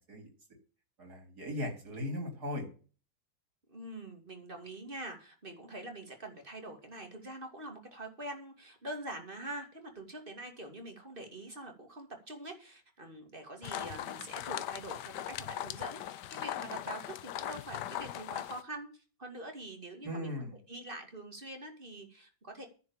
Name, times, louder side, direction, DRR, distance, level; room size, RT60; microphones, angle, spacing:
voice 1, 1.0-2.7 20.0-20.6, left 1 dB, 65° right, 4 dB, 4.3 m, -38 dB
voice 2, 3.7-20.3 20.7-22.7, right 1 dB, 30° right, 4 dB, 2.8 m, -45 dB
sound 1, 13.6-18.6, left 12 dB, 75° left, 1.3 m, -39 dB
10.0 x 7.8 x 7.5 m, 0.37 s
omnidirectional pair, 1.8 m